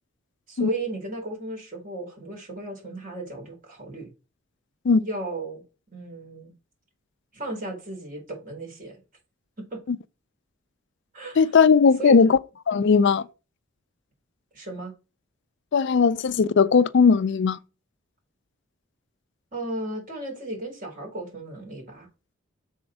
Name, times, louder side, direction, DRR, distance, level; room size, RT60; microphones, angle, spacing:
voice 1, 0.5-4.1 5.0-5.6 5.9-6.5 7.3-9.0 9.7-9.8 11.1-11.6 12.0-12.2 12.7-12.8 14.5-14.9 19.5-22.1, right 1 dB, 40° right, 4.4 m, -34 dB
voice 2, 11.4-12.4 12.7-13.3 15.7-17.6, left 5 dB, 60° left, 0.4 m, -18 dB
7.1 x 4.3 x 6.1 m
head